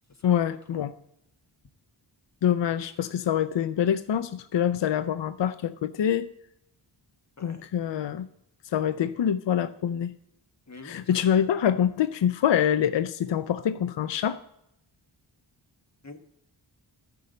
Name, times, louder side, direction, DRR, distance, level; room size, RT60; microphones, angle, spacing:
voice 1, 0.2-0.9 2.4-6.3 7.4-8.3 8.7-10.1 10.8-14.4, left 9 dB, 65° left, 12 dB, 0.6 m, -25 dB
voice 2, 10.7-11.1 16.0-16.2, left 3 dB, 35° left, 6 dB, 1.3 m, -45 dB
13.5 x 5.5 x 6.4 m, 0.78 s
wide cardioid pair, 70°, 47 cm